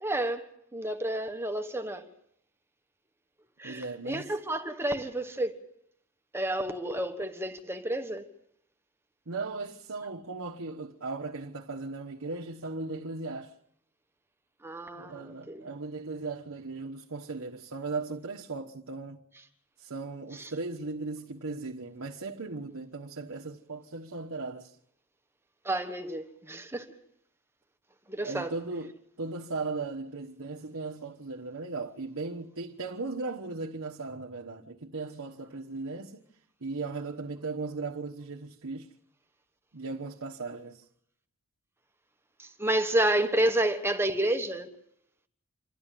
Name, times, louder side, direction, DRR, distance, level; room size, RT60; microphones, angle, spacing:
voice 1, 0.0-0.4 0.7-2.1 3.6-5.6 6.3-8.2 14.6-15.7 20.4-20.5 25.6-26.9 28.1-28.5 42.4-44.7, right 1 dB, 10° right, 1.3 m, -30 dB
voice 2, 3.6-4.3 9.3-13.5 14.9-19.2 19.8-24.8 28.2-36.2 36.6-38.9 39.7-40.8, right 3 dB, 85° right, 1.3 m, -37 dB
27.5 x 13.0 x 9.1 m
head